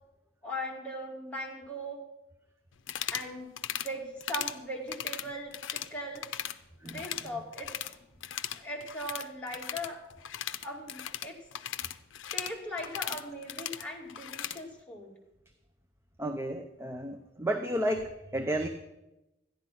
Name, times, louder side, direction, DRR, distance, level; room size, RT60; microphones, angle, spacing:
voice 1, 0.4-2.0 3.1-3.5 3.8-6.3 6.8-7.7 8.5-10.0 10.6-11.4 12.3-15.2, equal, 5° left, -3 dB, 2.3 m, -39 dB
sound 1, 2.8-3.3 3.6-3.9 4.2-4.6 4.9-5.9 6.2-6.6 6.9-8.0 8.2-14.6, left 11 dB, 85° left, 0.6 m, -37 dB
voice 2, 6.8-7.4 16.2-18.7, right 1 dB, 15° right, 6 dB, 0.6 m, -33 dB
13.5 x 10.5 x 5.8 m, 0.95 s
head